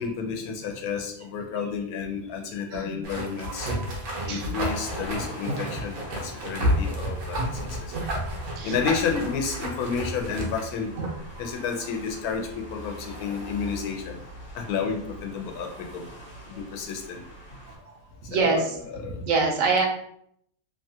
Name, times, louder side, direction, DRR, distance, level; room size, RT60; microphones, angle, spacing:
voice 1, 0.0-3.7 4.3-7.4 7.7-7.9 8.6-10.9 11.4-14.2 14.5-16.0 16.5-17.2 18.3-18.6 18.9-19.2, left 6 dB, 85° left, 2 dB, 1.1 m, -31 dB
sound 1, 3.0-11.3, right 1 dB, 90° right, 1.2 m, -30 dB
voice 2, 3.4-3.9 4.3-4.5 6.2-6.6 8.3-8.8 11.4-11.5 17.7-17.9 18.2-19.9, right 4 dB, 70° right, 1 dB, 0.9 m, -27 dB
sound 2, 4.6-17.8, equal, 50° left, 1.2 m, -42 dB
2.9 x 2.2 x 2.7 m, 0.70 s
omnidirectional pair, 1.5 m